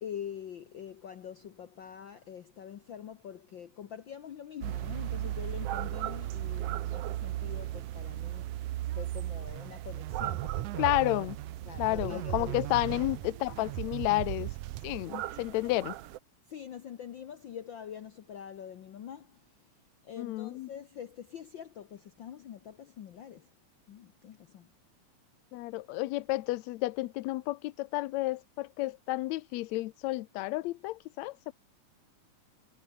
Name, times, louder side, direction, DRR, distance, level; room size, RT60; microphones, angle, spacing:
voice 1, 0.0-11.2 11.6-13.2 16.5-19.7 20.0-23.5 23.9-24.7, left 9 dB, 65° left, 1.2 m, -45 dB
sound 1, 4.6-16.2, right 14 dB, 70° right, 1.7 m, -37 dB
sound 2, 9.5-15.3, right 18 dB, 85° right, 2.1 m, -38 dB
voice 2, 10.8-11.4 11.8-14.5 14.8-15.9 20.2-20.7 25.5-31.5, left 19 dB, 80° left, 1.9 m, -31 dB
omnidirectional pair, 3.4 m